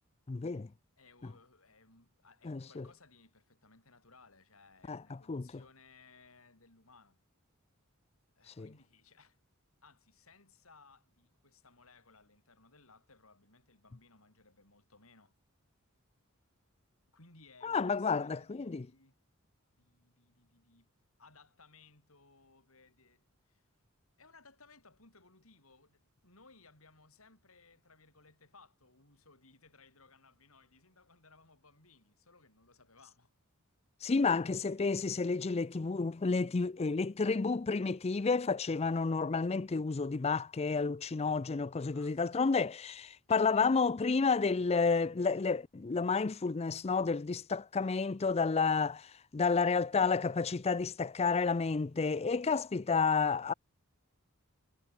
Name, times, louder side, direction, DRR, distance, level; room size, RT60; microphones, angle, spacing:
voice 1, 0.3-0.7 2.4-2.9 4.9-5.5 8.5-8.7 17.6-18.9 34.0-53.5, left 4 dB, 30° left, 0.5 m, -31 dB
voice 2, 1.0-7.2 8.4-9.4 9.8-15.3 17.1-19.2 19.7-20.9 21.2-23.7 24.2-33.3 41.9-42.5 52.5-52.7, left 3 dB, 80° left, 7.1 m, -62 dB
head